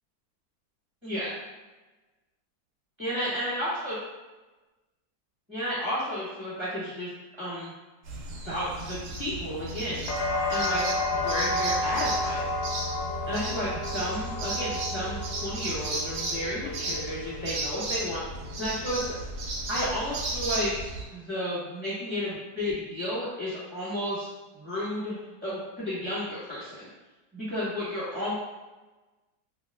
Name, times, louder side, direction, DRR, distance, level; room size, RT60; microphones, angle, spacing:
voice 1, 1.0-1.3 3.0-4.0 5.5-7.1 7.4-7.7 8.5-10.1 10.5-10.8 11.1-12.4 13.3-19.1 19.7-20.7 21.1-24.3 24.5-26.9 27.3-28.3, equal, 15° right, -10 dB, 1.3 m, -32 dB
sound 1, 8.0-21.0, right 2 dB, 75° right, 1.2 m, -34 dB
sound 2, 10.1-18.0 18.3-19.0, left 2 dB, 90° left, 1.3 m, -32 dB
2.9 x 2.3 x 3.4 m, 1.2 s
omnidirectional pair, 2.0 m